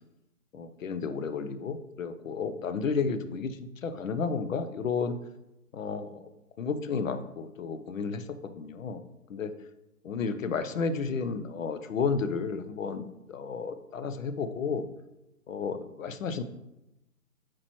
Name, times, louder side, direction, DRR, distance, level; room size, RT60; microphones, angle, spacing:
voice 1, 0.5-5.2 5.7-6.2 6.6-9.0 9.3-9.5 10.0-14.8 15.5-16.4, left 5 dB, 60° left, 10 dB, 0.7 m, -32 dB
8.6 x 4.5 x 3.0 m, 0.92 s
hypercardioid pair, 155°, 45 cm